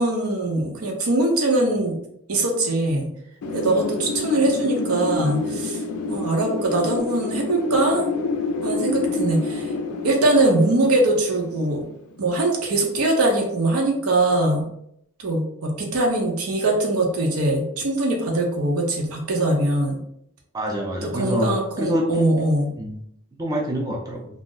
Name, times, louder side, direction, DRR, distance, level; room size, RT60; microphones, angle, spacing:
voice 1, 0.0-2.0 2.3-3.1 3.5-5.8 6.1-8.0 8.6-9.7 10.0-11.8 12.2-14.7 15.2-20.0 21.0-22.7, right 2 dB, 80° right, 1 dB, 0.7 m, -22 dB
Wind, 3.4-12.1, left 3 dB, 90° left, 0.4 m, -28 dB
voice 2, 20.5-21.5 21.8-22.3 22.8-23.0 23.4-24.3, equal, 15° right, -1 dB, 0.3 m, -25 dB
2.4 x 2.0 x 3.8 m, 0.73 s
head